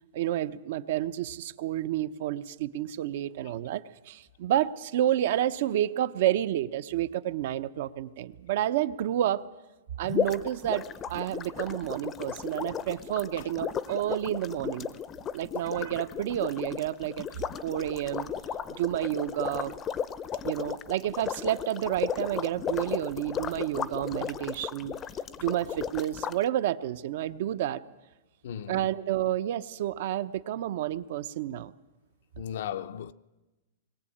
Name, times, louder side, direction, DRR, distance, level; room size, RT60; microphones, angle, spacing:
voice 1, 0.1-9.4 10.0-10.8 11.1-14.9 15.3-17.3 17.6-18.3 18.7-19.7 20.4-24.9 25.4-27.8 28.7-31.7, right 12 dB, 55° right, 0.8 m, -30 dB
sound 1, 10.0-26.4, left 8 dB, 20° left, 0.6 m, -35 dB
voice 2, 28.4-28.9 32.4-33.1, left 9 dB, 65° left, 0.6 m, -36 dB
21.5 x 17.5 x 8.7 m
hypercardioid pair, 155°, 0 cm